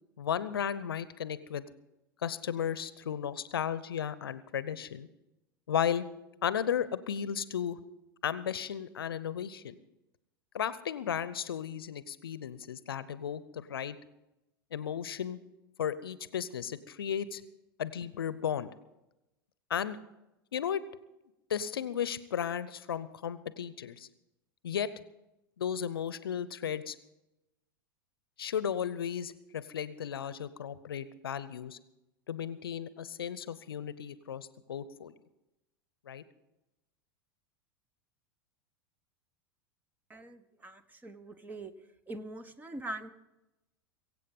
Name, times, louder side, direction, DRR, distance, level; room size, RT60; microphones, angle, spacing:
voice 1, 0.2-1.6 2.2-5.1 5.7-6.0 6.4-7.8 8.2-9.8 10.5-14.0 14.7-15.4 15.8-17.4 17.8-18.7 19.7-20.0 20.5-20.8 21.5-24.1 24.6-24.9 25.6-27.0 28.4-31.8 32.3-35.1 36.1-36.2, left 8 dB, 75° left, 16 dB, 0.7 m, -34 dB
voice 2, 40.1-40.7 41.0-41.7 42.1-43.1, right 1 dB, 15° right, 14 dB, 1.0 m, -42 dB
23.0 x 8.2 x 5.4 m, 0.95 s
figure-of-eight pair, 90°, 12 cm